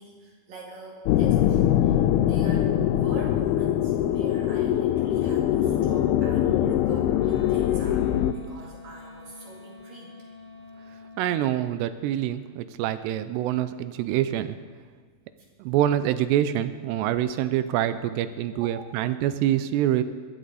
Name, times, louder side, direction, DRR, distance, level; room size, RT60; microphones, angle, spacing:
voice 1, 0.0-8.1 8.3-10.1 18.5-18.9, right 2 dB, 55° right, -3 dB, 3.7 m, -44 dB
sound 1, 1.1-8.3, left 11 dB, 85° left, 2.3 m, -22 dB
Wind instrument woodwind instrument, 7.2-11.3, left 3 dB, 30° right, 1.5 m, -46 dB
voice 2, 11.2-14.5 15.6-20.0, right 12 dB, 85° right, 12 dB, 2.7 m, -25 dB
21.5 x 13.5 x 4.1 m, 1.5 s
omnidirectional pair, 5.0 m